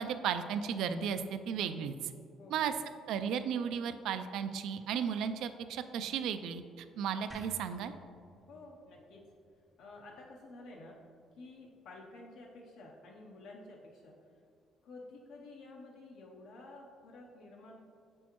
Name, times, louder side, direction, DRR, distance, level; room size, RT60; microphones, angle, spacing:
voice 1, 0.0-2.1 2.5-2.7 3.1-7.9, right 7 dB, 75° right, 10 dB, 0.3 m, -35 dB
sound 1, 7.3-10.5, equal, 5° right, 0.4 m, -56 dB
voice 2, 8.5-9.2 9.8-11.0 11.4-14.2 14.8-17.8, left 2 dB, 80° left, -2 dB, 0.7 m, -51 dB
7.1 x 6.2 x 3.0 m, 2.4 s
cardioid pair, 170°, 0 cm